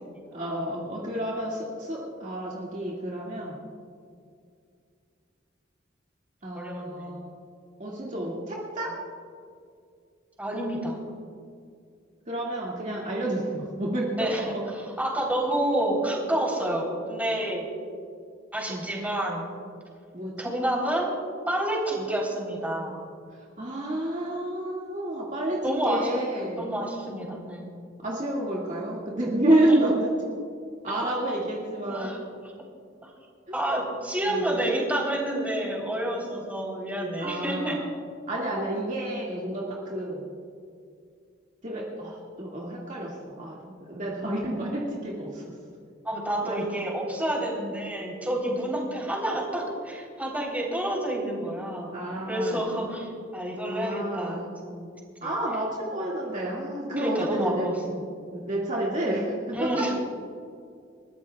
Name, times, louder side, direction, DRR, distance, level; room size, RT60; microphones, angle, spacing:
voice 1, 0.3-3.6 6.4-7.3 7.8-8.9 12.3-14.5 18.7-18.8 20.1-20.5 22.0-22.1 23.6-26.7 28.0-30.1 30.8-32.1 34.3-34.5 37.2-37.9 38.3-40.2 41.6-45.4 46.4-46.6 51.9-52.7 53.6-54.5 55.2-57.7 58.3-60.0, right 1 dB, 40° right, -4 dB, 2.1 m, -29 dB
voice 2, 6.5-7.1 10.4-11.0 14.2-14.5 15.0-17.7 18.5-19.5 20.4-21.1 21.5-22.9 25.6-26.1 26.6-27.7 29.5-29.8 31.3-31.4 31.9-32.2 33.0-33.1 33.5-37.8 46.0-51.9 52.3-54.9 57.0-58.0 59.5-60.0, right 1 dB, 10° right, -2 dB, 3.7 m, -29 dB
29.0 x 14.0 x 2.4 m, 2.3 s
head